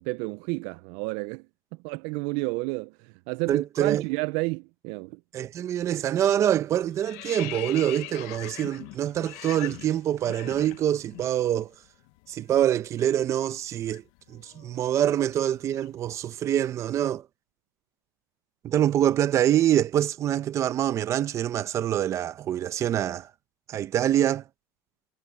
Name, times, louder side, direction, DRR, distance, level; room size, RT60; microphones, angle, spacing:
voice 1, 0.0-1.5 1.8-5.2, right 26 dB, 70° right, 0.4 m, -31 dB
voice 2, 3.5-4.0 5.3-11.7 12.3-14.0 14.3-17.3 18.6-23.3 23.7-24.4, right 11 dB, 35° right, 0.9 m, -25 dB
sound 1, 5.7-6.0 6.3-11.3 11.6-11.8 12.1-16.1, left 22 dB, 75° left, 0.7 m, -42 dB
cardioid pair, 140°, 8 cm